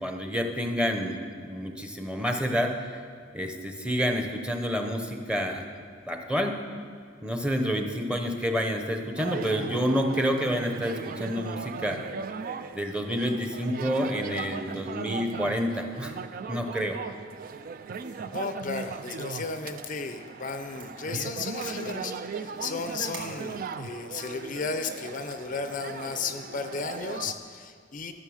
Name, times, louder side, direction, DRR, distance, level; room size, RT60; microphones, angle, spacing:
voice 1, 0.0-3.0 3.3-5.6 6.1-6.6 7.2-12.0 12.7-16.1 16.5-17.0, equal, 5° right, 4 dB, 0.8 m, -28 dB
sound 1, 9.2-27.3, right 5 dB, 45° right, 0.4 m, -38 dB
sound 2, 18.0-18.8 19.8-20.3 20.8-20.9 21.6-21.7 22.4-23.6 24.2-24.3 25.0-25.1, right 4 dB, 65° right, 2.4 m, -47 dB
voice 2, 18.3-28.1, left 4 dB, 45° left, 8 dB, 0.5 m, -34 dB
12.5 x 6.5 x 6.3 m, 2.2 s
head